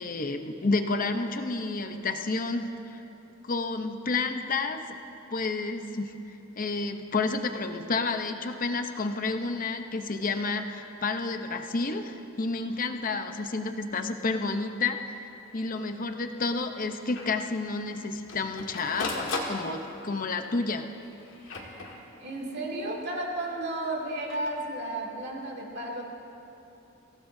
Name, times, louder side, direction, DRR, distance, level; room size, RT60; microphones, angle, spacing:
voice 1, 0.0-3.0 3.4-4.8 5.3-6.1 6.5-20.9, left 3 dB, 40° left, 6 dB, 0.8 m, -30 dB
Printer, 15.5-15.6 15.9-16.0 16.4-16.5 17.2-17.4 18.0-20.1 20.9-22.4 24.1-24.5, left 3 dB, 65° left, 1.8 m, -37 dB
voice 2, 22.2-26.0, right 1 dB, 55° right, -2 dB, 2.4 m, -33 dB
24.5 x 16.5 x 2.7 m, 2.9 s
head